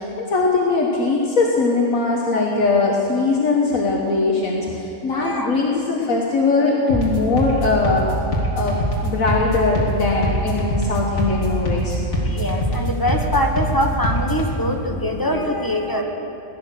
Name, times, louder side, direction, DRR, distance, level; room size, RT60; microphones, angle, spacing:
voice 1, 0.0-8.0 8.5-12.0, left 3 dB, 70° left, -1 dB, 1.6 m, -20 dB
voice 2, 5.1-5.5 12.3-16.0, equal, 15° left, 2 dB, 1.0 m, -23 dB
sound 1, 6.9-14.5, equal, 55° left, 2.9 m, -23 dB
17.0 x 11.0 x 6.6 m, 3.0 s
omnidirectional pair, 1.5 m